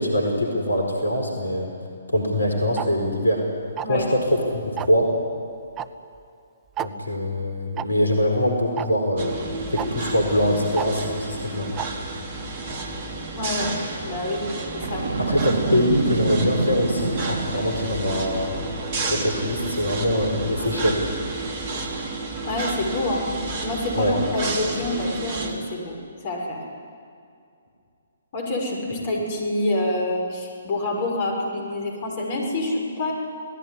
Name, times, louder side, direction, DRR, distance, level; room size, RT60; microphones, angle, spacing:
voice 1, 0.0-1.7 2.1-3.4 3.9-5.2 6.8-9.4 9.7-11.7 15.2-18.6 19.1-21.0 23.9-24.2, left 1 dB, 75° left, 2 dB, 4.5 m, -23 dB
Tick-tock, 2.8-2.9 3.8-4.1 4.8-5.0 5.8-5.9 6.2-6.3 6.8-6.9 7.8-7.9 8.8-8.9 9.8-9.9 10.8-10.9 11.8-11.9, right 11 dB, 20° right, 0.8 m, -29 dB
sound 1, 9.2-25.5, right 3 dB, 40° right, 3.6 m, -31 dB
voice 2, 13.3-13.7 14.0-14.4 14.7-15.1 22.5-23.3 23.6-26.0 26.2-26.6 28.3-33.1, left 2 dB, 40° left, 1 dB, 6.7 m, -27 dB
Boom, 14.8-18.0, right 4 dB, 60° right, 2.1 m, -27 dB
28.0 x 18.0 x 9.9 m, 2.4 s
figure-of-eight pair, 130°, 0 cm